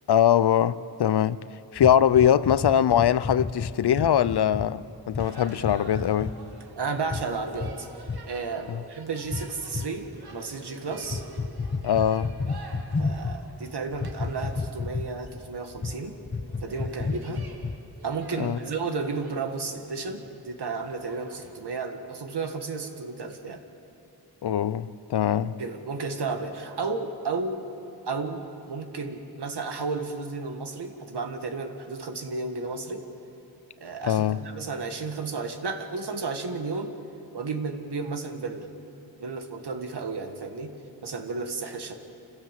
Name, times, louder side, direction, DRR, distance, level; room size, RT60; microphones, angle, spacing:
voice 1, 0.1-1.4 1.7-6.3 8.7-8.8 11.8-12.3 18.4-18.6 24.4-25.6 34.0-34.4, left 9 dB, 85° left, 0.6 m, -22 dB
sound 1, 1.8-4.7 5.1-5.3 5.6-6.3 7.0-7.3 7.5-7.7 8.0-8.2 9.2-9.9 11.0-13.4 13.9-15.3 15.8-16.0 16.3-17.9, left 4 dB, 30° left, 0.9 m, -31 dB
sound 2, 5.2-21.5, right 3 dB, 70° right, 2.0 m, -48 dB
voice 2, 6.8-11.2 13.0-16.2 16.6-17.5 18.0-23.6 25.6-27.7 28.1-33.1 33.8-37.0 37.3-38.7 39.2-42.0, right 4 dB, 85° right, 1.8 m, -33 dB
27.5 x 16.0 x 7.5 m
wide cardioid pair, 105°, 39 cm